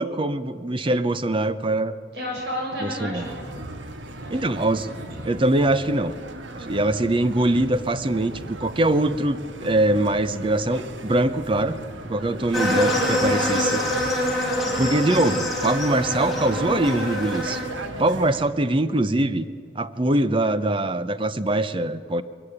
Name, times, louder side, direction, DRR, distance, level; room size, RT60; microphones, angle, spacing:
voice 1, 0.0-1.9 2.8-3.3 4.3-4.9 5.2-6.1 6.5-11.8 12.0-13.8 14.8-17.6 18.0-19.4 19.7-22.2, right 1 dB, 25° right, 13 dB, 0.7 m, -23 dB
voice 2, 2.1-3.4 4.1-5.3, equal, 60° right, -2 dB, 7.1 m, -33 dB
sound 1, 3.2-18.4, right 2 dB, 85° right, 1.5 m, -37 dB
sound 2, 12.5-17.6, left 1 dB, ahead, 4.5 m, -25 dB
21.5 x 14.5 x 9.9 m, 2.3 s
head